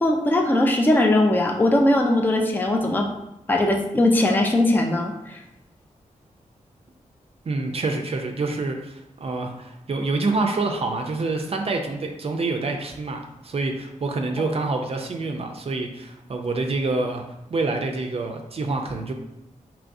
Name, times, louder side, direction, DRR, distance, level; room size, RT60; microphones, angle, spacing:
voice 1, 0.0-3.1 3.5-5.4, left 1 dB, 15° left, 1 dB, 0.4 m, -20 dB
voice 2, 7.5-19.1, right 3 dB, 50° right, 3 dB, 0.5 m, -27 dB
4.7 x 3.0 x 2.6 m, 0.87 s
wide cardioid pair, 120°, 13 cm